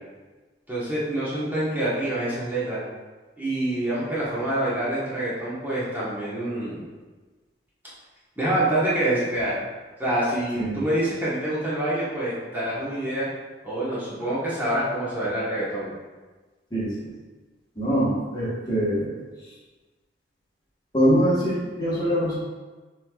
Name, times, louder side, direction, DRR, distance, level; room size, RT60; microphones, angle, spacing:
voice 1, 0.7-2.8 3.4-6.8 8.4-9.6 10.0-13.3 13.6-15.9, right 1 dB, 10° right, -9 dB, 1.1 m, -26 dB
voice 2, 17.8-19.1 20.9-22.3, equal, 25° left, -7 dB, 1.2 m, -23 dB
7.2 x 3.1 x 2.3 m, 1.3 s
head